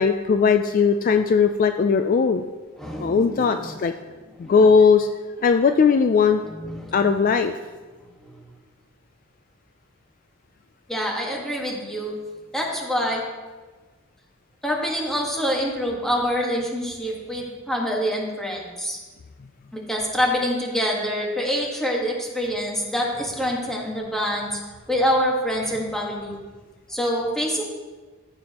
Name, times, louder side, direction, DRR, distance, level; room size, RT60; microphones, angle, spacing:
voice 1, 0.0-2.4 3.0-3.9 4.4-5.1 5.4-6.4 6.9-7.5, left 5 dB, 45° left, 8 dB, 0.3 m, -18 dB
voice 2, 2.8-3.7 4.4-4.5 6.4-7.2 8.2-8.3 10.9-12.1 12.5-13.2 14.6-19.0 19.7-24.6 24.9-26.4 26.9-27.6, equal, ahead, -2 dB, 1.5 m, -26 dB
14.5 x 6.9 x 2.9 m, 1.3 s
head